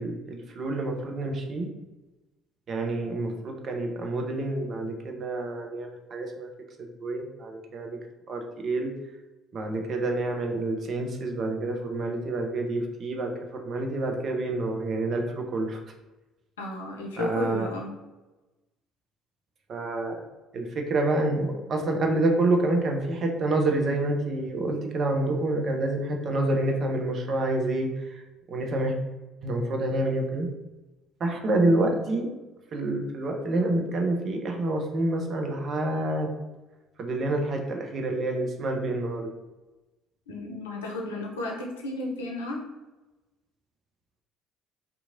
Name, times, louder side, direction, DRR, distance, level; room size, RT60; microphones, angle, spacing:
voice 1, 0.0-1.7 2.7-6.5 6.8-8.0 8.3-8.9 9.5-15.8 17.2-17.7 19.7-20.1 20.5-28.1 28.5-29.0 29.4-30.5 31.2-32.3 32.7-36.3 37.0-39.4, right 2 dB, 45° right, 2 dB, 0.6 m, -28 dB
voice 2, 16.6-17.9 40.3-42.6, left 1 dB, 75° left, 0 dB, 0.5 m, -33 dB
2.8 x 2.4 x 2.6 m, 1.1 s
figure-of-eight pair, 55°, 0 cm